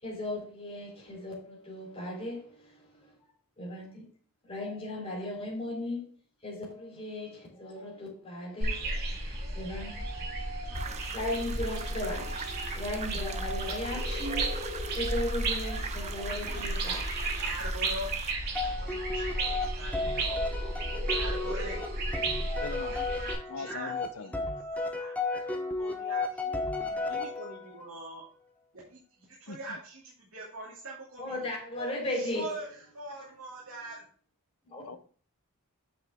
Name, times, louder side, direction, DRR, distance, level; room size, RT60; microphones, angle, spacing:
voice 1, 0.0-3.1 3.6-4.0 4.5-6.0 6.4-14.5 14.9-17.1 17.3-17.4 31.2-32.5 34.7-34.8, left 1 dB, 25° left, 3.7 m, -37 dB
sound 1, 8.6-23.3, right 2 dB, 45° right, 3.2 m, -33 dB
voice 2, 10.0-11.1 16.4-17.0 17.3-18.1 18.5-20.4 21.0-21.8 22.8-23.3 23.5-24.3 24.9-28.2 28.8-31.5 32.0-34.0, right 2 dB, 70° right, 2.7 m, -44 dB
sound 2, 10.7-18.3, right 6 dB, 30° right, 0.7 m, -42 dB
sound 3, 18.5-27.8, left 3 dB, 5° left, 1.0 m, -34 dB
voice 3, 22.6-22.9 23.5-24.3 29.5-29.8 34.8-35.0, left 4 dB, 75° left, 0.8 m, -40 dB
8.6 x 5.9 x 3.6 m
head